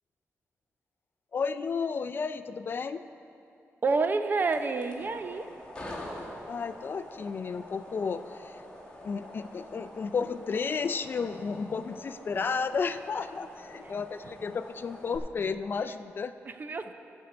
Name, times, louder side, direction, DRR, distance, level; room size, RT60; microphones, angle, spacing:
voice 1, 1.3-3.0 6.5-8.6 9.0-16.3, left 5 dB, 45° left, 11 dB, 0.3 m, -32 dB
voice 2, 3.8-5.5 13.7-13.9 16.5-16.9, right 3 dB, 40° right, 8 dB, 0.5 m, -29 dB
sound 1, 4.4-15.2, left 1 dB, 15° left, 1.9 m, -46 dB
13.0 x 4.5 x 7.8 m, 2.6 s
wide cardioid pair, 115°, 5 cm